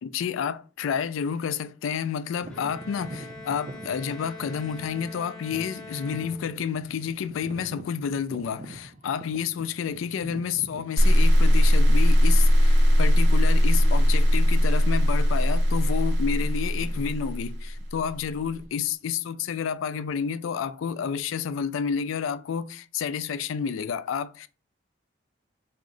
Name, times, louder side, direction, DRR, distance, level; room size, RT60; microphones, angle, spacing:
voice 1, 0.0-24.5, left 7 dB, 85° left, 0.3 m, -30 dB
sound 1, 2.4-12.2 12.8-12.9 13.6-13.8 14.1-14.3 15.0-15.5 15.8-19.2, right 2 dB, 40° right, 0.4 m, -45 dB
Bowed string instrument, 2.5-7.0, left 3 dB, 5° left, 0.6 m, -44 dB
sound 2, 11.0-18.1, equal, 70° right, 0.7 m, -19 dB
3.6 x 2.0 x 3.7 m
head